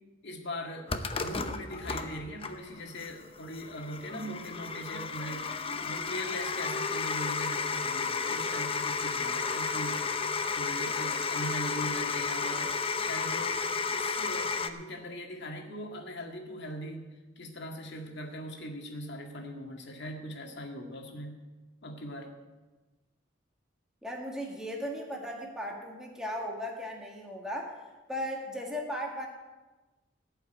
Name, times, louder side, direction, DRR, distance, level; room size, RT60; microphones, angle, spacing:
voice 1, 0.2-10.1 10.5-13.6 13.9-21.4 21.8-22.3, equal, 60° left, 2 dB, 1.9 m, -40 dB
sound 1, 0.9-14.7, left 5 dB, 30° left, 0.7 m, -32 dB
voice 2, 24.0-27.8 28.1-29.3, equal, 5° right, -1 dB, 1.8 m, -36 dB
16.5 x 5.7 x 9.1 m, 1.2 s
head